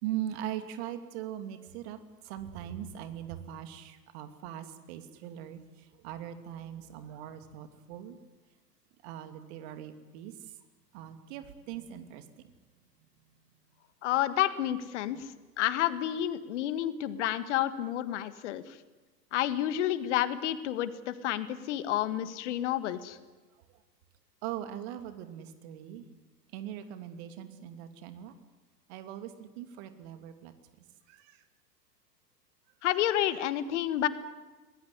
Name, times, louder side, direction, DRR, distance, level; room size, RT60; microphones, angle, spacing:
voice 1, 0.0-8.2 9.0-10.5 10.9-12.5 13.0-13.1 15.1-15.2 24.4-26.1 26.5-28.4 28.9-30.5 31.1-31.4 33.1-33.2, right 11 dB, 40° right, 8 dB, 2.8 m, -41 dB
voice 2, 14.0-18.8 19.3-23.2 32.8-34.1, left 12 dB, 45° left, 13 dB, 1.8 m, -30 dB
27.0 x 20.0 x 9.8 m, 1.2 s
figure-of-eight pair, 100°, 49 cm